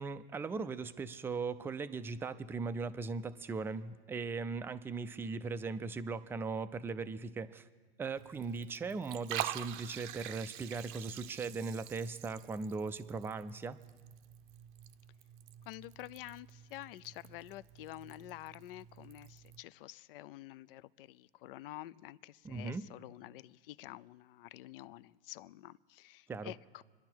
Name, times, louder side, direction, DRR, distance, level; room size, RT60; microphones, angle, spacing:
voice 1, 0.0-7.6 8.0-13.8 22.4-22.8 26.3-26.5, right 4 dB, 10° right, 11 dB, 0.4 m, -39 dB
Liquid, 8.2-19.6, right 12 dB, 50° right, 0.7 m, -47 dB
voice 2, 15.7-26.8, left 15 dB, 65° left, 17 dB, 0.5 m, -49 dB
27.5 x 10.5 x 4.5 m, 1.4 s
hypercardioid pair, 130°, 31 cm